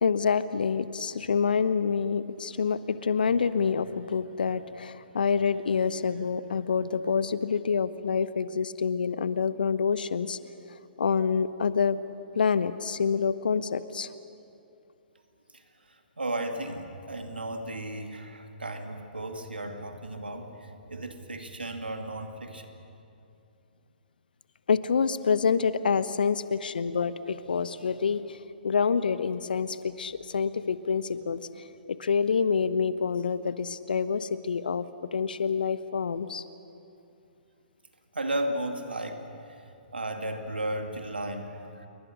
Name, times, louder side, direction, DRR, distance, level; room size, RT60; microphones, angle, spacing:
voice 1, 0.0-10.4 11.0-12.0 12.3-14.1 24.7-28.2 28.6-31.4 31.9-34.8 35.1-36.4, left 6 dB, 65° left, 14 dB, 1.0 m, -27 dB
voice 2, 15.5-22.7 38.1-39.3 39.9-41.9, right 1 dB, 80° right, 5 dB, 2.4 m, -35 dB
28.5 x 23.0 x 6.6 m, 2.7 s
figure-of-eight pair, 125°, 5 cm